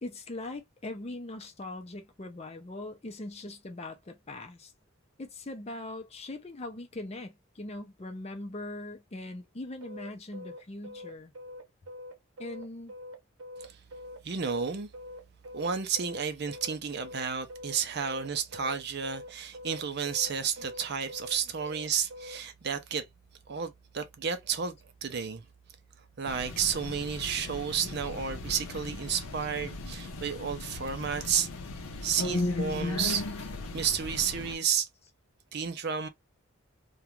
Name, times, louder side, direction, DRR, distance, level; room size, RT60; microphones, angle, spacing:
voice 1, 0.0-4.7 5.2-11.3 12.4-12.9, left 2 dB, 30° left, 0.5 m, -41 dB
sound 1, 9.8-22.4, left 1 dB, 75° right, 0.8 m, -44 dB
voice 2, 14.2-14.9 15.5-23.1 23.5-25.4 26.2-31.5 32.0-33.3 33.7-34.9 35.5-36.1, right 7 dB, 50° right, 0.5 m, -32 dB
sound 2, 26.2-34.6, left 2 dB, 90° left, 0.6 m, -36 dB
2.4 x 2.2 x 2.9 m
head